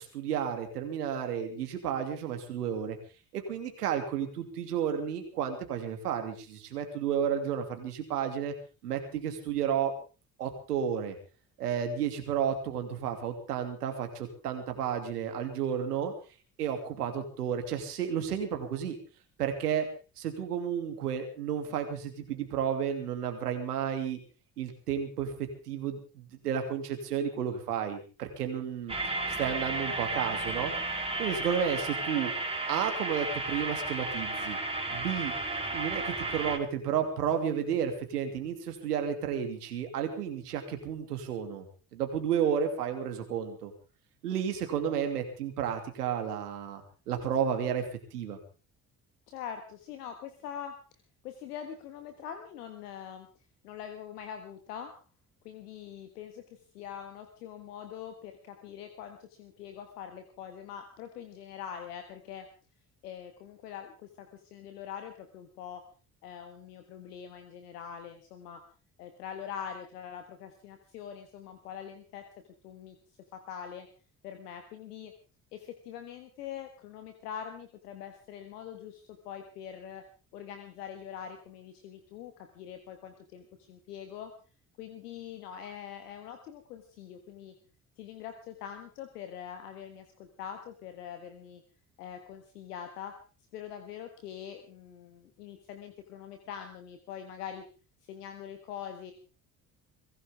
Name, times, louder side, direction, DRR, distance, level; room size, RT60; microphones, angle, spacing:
voice 1, 0.0-3.0 3.3-8.5 8.8-9.9 10.4-11.2 11.6-16.1 16.6-19.0 19.4-19.9 20.2-24.2 24.6-25.3 25.7-29.0 29.3-30.7 31.2-32.3 32.7-34.6 34.9-35.3 35.7-41.7 41.9-43.7 44.2-47.8 48.1-48.4, right 8 dB, 85° right, 6 dB, 2.8 m, -32 dB
sound 1, 28.9-36.6, right 2 dB, 10° right, 3.4 m, -33 dB
voice 2, 49.3-50.8 51.2-53.3 53.6-54.9 55.4-62.5 63.0-65.8 66.2-68.6 69.0-72.2 72.6-73.0 73.3-73.9 74.2-75.1 75.5-80.0 80.3-84.3 84.8-87.5 88.0-91.6 92.0-93.1 93.5-97.6 98.0-99.1, left 8 dB, 80° left, 6 dB, 1.6 m, -43 dB
23.5 x 16.5 x 3.6 m, 0.35 s
hypercardioid pair, 50°, 46 cm